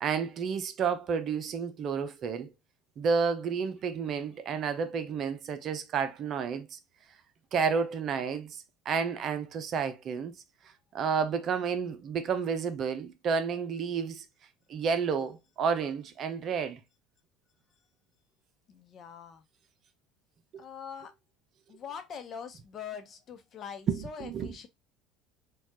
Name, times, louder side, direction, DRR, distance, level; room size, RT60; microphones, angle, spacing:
voice 1, 0.0-2.5 3.0-6.8 7.5-10.3 10.9-14.2 14.7-16.8 20.5-20.6 23.9-24.7, right 6 dB, 50° right, 0.6 m, -31 dB
voice 2, 18.7-19.4 20.6-21.1 21.7-24.7, left 7 dB, 45° left, 0.8 m, -43 dB
4.3 x 2.4 x 2.8 m
hypercardioid pair, 75°, 0 cm